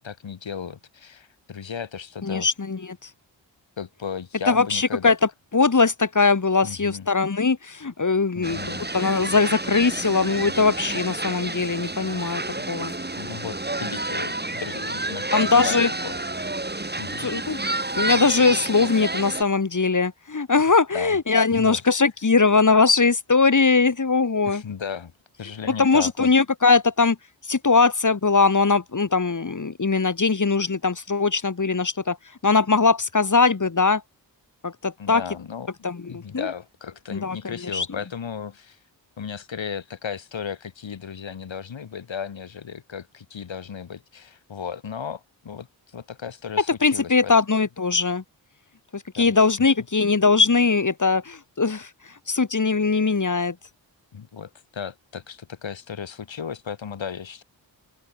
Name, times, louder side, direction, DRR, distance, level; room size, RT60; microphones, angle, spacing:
voice 1, 0.0-2.5 3.8-5.2 6.6-7.1 8.3-8.8 12.5-12.7 13.2-16.2 17.0-17.3 20.9-21.2 21.5-21.8 24.5-25.1 25.4-26.3 35.0-38.8 39.2-47.3 49.2-49.3 54.1-57.4, left 7 dB, 85° left, 5.6 m, -35 dB
voice 2, 2.2-2.8 4.5-5.2 5.5-12.4 12.7-12.9 15.3-15.9 17.2-17.6 18.0-24.6 25.8-27.2 27.4-32.2 32.4-34.0 34.6-35.2 35.8-36.5 37.1-37.9 46.8-48.2 48.9-51.9 52.3-53.6, left 4 dB, 40° left, 2.6 m, -21 dB
sound 1, 8.4-19.4, right 2 dB, 20° right, 3.6 m, -30 dB
open air
cardioid pair, 50°, 44 cm